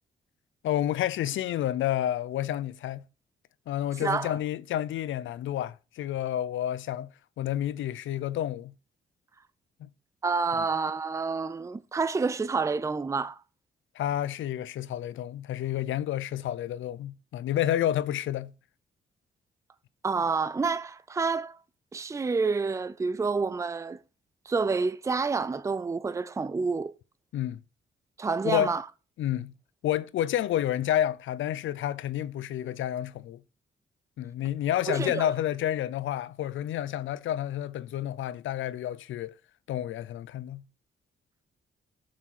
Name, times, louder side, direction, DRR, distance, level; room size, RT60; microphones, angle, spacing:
voice 1, 0.6-3.0 3.7-7.1 7.4-8.7 9.8-9.9 10.6-10.7 14.0-18.5 27.3-27.6 28.4-28.7 29.2-29.5 29.8-33.4 34.2-39.3 39.7-40.6, left 12 dB, 85° left, 0.5 m, -30 dB
voice 2, 4.0-4.3 10.2-13.4 20.0-21.6 21.9-24.0 24.5-26.9 28.2-28.8 34.9-35.3, right 4 dB, 15° right, 0.4 m, -28 dB
7.2 x 6.2 x 5.8 m
cardioid pair, 115°, 20 cm